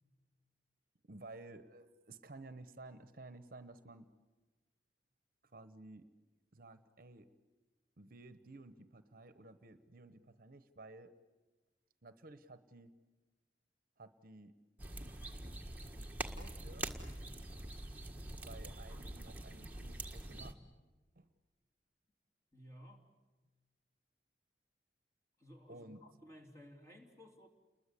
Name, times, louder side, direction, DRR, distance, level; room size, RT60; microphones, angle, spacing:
voice 1, 1.0-4.1 5.5-6.1 6.5-7.3 8.0-11.1 12.0-12.9 14.0-14.6 16.3-16.9 18.4-20.6 21.2-21.3 25.7-26.0, right 2 dB, 50° right, 12 dB, 1.0 m, -54 dB
sound 1, 14.8-20.5, right 2 dB, 10° right, 1.6 m, -45 dB
voice 2, 22.5-23.1 25.4-27.5, equal, 15° left, 1 dB, 3.1 m, -56 dB
29.5 x 21.5 x 8.4 m, 1.3 s
head